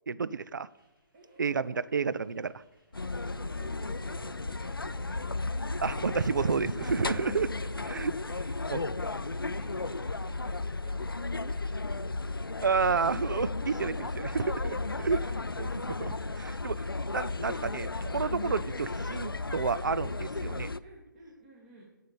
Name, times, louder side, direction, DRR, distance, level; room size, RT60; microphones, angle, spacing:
voice 1, 0.1-0.7 1.4-2.6 5.8-7.5 7.9-8.1 8.7-8.8 12.6-20.7, right 5 dB, 60° right, 18 dB, 0.4 m, -31 dB
sound 1, 0.7-17.1, left 1 dB, 85° right, 3.9 m, -63 dB
voice 2, 1.1-1.9 3.2-4.8 6.8-7.8 8.0-12.5 18.4-18.6 20.8-21.9, right 2 dB, 35° right, -3 dB, 2.1 m, -53 dB
sound 2, 2.9-20.8, left 3 dB, 85° left, 0.4 m, -34 dB
7.7 x 7.4 x 8.1 m, 1.0 s
figure-of-eight pair, 140°, 11 cm